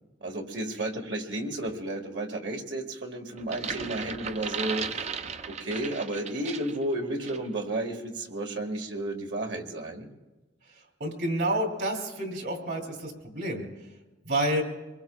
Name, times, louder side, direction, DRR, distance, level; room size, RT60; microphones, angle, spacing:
voice 1, 0.2-5.1 5.4-10.1, right 1 dB, 85° right, 1 dB, 1.9 m, -32 dB
sound 1, 3.4-6.8 7.2-7.5, right 6 dB, 40° right, 0.5 m, -36 dB
voice 2, 11.0-13.7 14.2-14.6, right 1 dB, 70° right, 2 dB, 3.2 m, -29 dB
25.0 x 22.0 x 2.4 m, 1.1 s
head